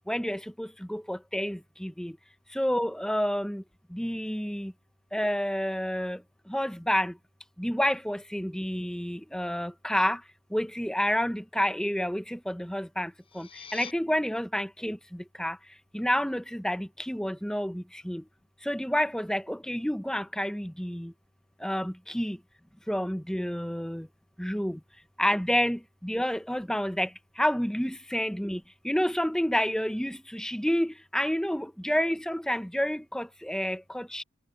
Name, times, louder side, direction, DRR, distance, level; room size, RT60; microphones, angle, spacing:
voice 1, 0.1-2.2 2.5-3.6 3.9-4.7 5.1-6.2 6.5-7.1 7.6-10.2 10.5-15.6 15.9-18.2 18.6-21.1 21.6-22.4 22.9-24.1 24.4-24.8 25.2-27.1 27.4-34.2, equal, 5° left, 0.9 m, -29 dB
sound 1, 13.1-13.9, left 6 dB, 25° left, 7.4 m, -44 dB
head